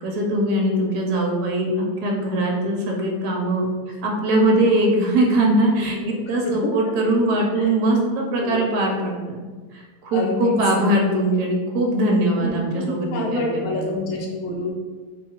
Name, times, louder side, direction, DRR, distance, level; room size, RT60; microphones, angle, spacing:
voice 1, 0.0-3.7 4.0-9.4 9.7-13.1 13.3-13.9, right 1 dB, 75° right, -1 dB, 1.1 m, -21 dB
voice 2, 5.8-6.7 7.5-7.7 8.4-8.6 10.1-10.6 12.4-14.7, left 2 dB, 55° left, -2 dB, 0.9 m, -28 dB
3.4 x 2.3 x 4.4 m, 1.4 s
omnidirectional pair, 1.8 m